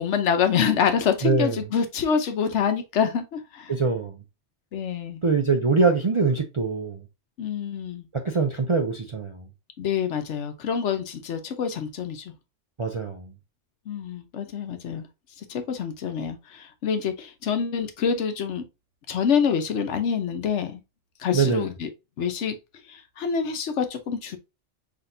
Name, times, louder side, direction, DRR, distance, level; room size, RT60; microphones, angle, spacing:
voice 1, 0.0-3.7 4.7-5.2 7.4-8.1 9.8-12.3 13.9-15.1 15.5-18.6 19.1-20.8 21.2-21.9 22.2-22.6 22.9-24.4, left 7 dB, 75° left, 1.0 m, -26 dB
voice 2, 1.2-1.6 3.7-4.1 5.2-7.0 8.1-9.4 12.8-13.3 21.3-21.6, right 4 dB, 45° right, 0.4 m, -23 dB
5.9 x 2.8 x 2.6 m
omnidirectional pair, 1.2 m